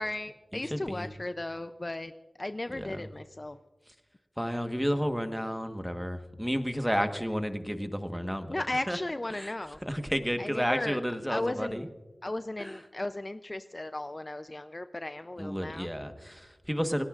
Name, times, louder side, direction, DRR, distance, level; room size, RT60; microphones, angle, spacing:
voice 1, 0.0-2.1 2.4-3.6 8.5-9.8 10.4-11.0 11.3-11.9 12.2-15.9, left 2 dB, 30° left, 10 dB, 0.5 m, -35 dB
voice 2, 0.5-1.1 2.7-3.1 4.4-9.0 9.3-9.5 9.9-11.9 12.6-12.8 15.4-17.0, equal, ahead, 7 dB, 1.3 m, -32 dB
27.5 x 18.0 x 2.5 m, 1.2 s
wide cardioid pair, 60°, 0 cm